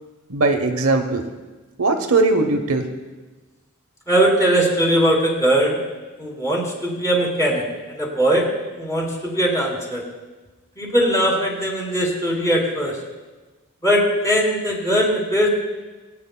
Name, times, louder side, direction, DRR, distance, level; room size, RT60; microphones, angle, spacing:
voice 1, 0.3-1.2 1.8-2.9, right 3 dB, 70° right, 5 dB, 0.9 m, -19 dB
voice 2, 4.1-5.8 6.2-8.5 8.8-10.0 10.8-13.0 13.8-15.5, right 1 dB, 15° left, -2 dB, 2.5 m, -20 dB
22.5 x 8.8 x 2.2 m, 1.2 s
head